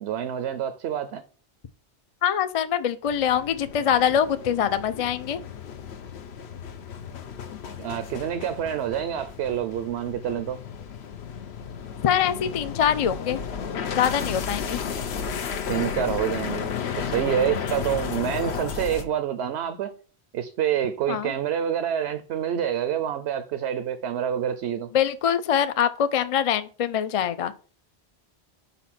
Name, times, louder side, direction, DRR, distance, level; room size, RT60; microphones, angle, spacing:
voice 1, 0.0-1.2 7.8-10.6 15.7-20.0 20.3-24.9, right 9 dB, 80° right, 0.9 m, -27 dB
voice 2, 2.2-5.4 12.0-13.4 14.0-14.8 21.1-21.3 24.9-27.5, left 9 dB, 50° left, 0.4 m, -24 dB
sound 1, 3.1-19.0, left 7 dB, 80° left, 1.0 m, -33 dB
5.1 x 4.2 x 5.7 m
omnidirectional pair, 1.1 m